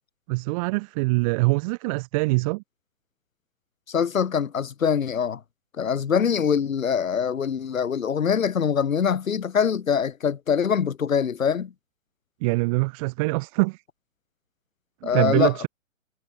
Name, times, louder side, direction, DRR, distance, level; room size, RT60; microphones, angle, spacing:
voice 1, 0.3-2.6 12.4-13.8 15.0-15.7, right 26 dB, 25° right, 1.3 m, -24 dB
voice 2, 3.9-5.4 5.8-11.7 15.0-15.5, left 7 dB, 75° left, 1.7 m, -23 dB
hypercardioid pair, 140°, 40 cm